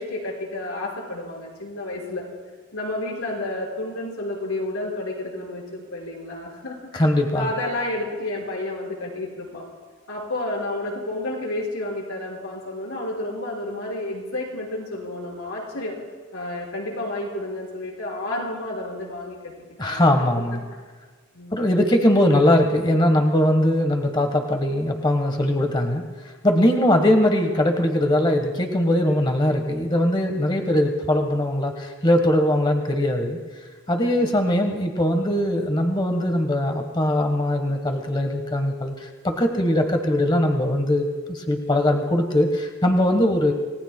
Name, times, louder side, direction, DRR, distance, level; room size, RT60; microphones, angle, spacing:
voice 1, 0.0-2.2 2.7-7.0 7.3-9.6 10.1-15.9 16.3-19.5 19.8-20.1 20.3-20.6 21.3-21.6 34.0-34.3, left 2 dB, 80° left, -1 dB, 5.1 m, -31 dB
voice 2, 6.9-7.5 19.8-20.6 21.5-26.0 26.4-33.4 33.9-43.5, left 1 dB, 20° left, 4 dB, 1.2 m, -21 dB
28.5 x 18.5 x 2.2 m, 1.4 s
head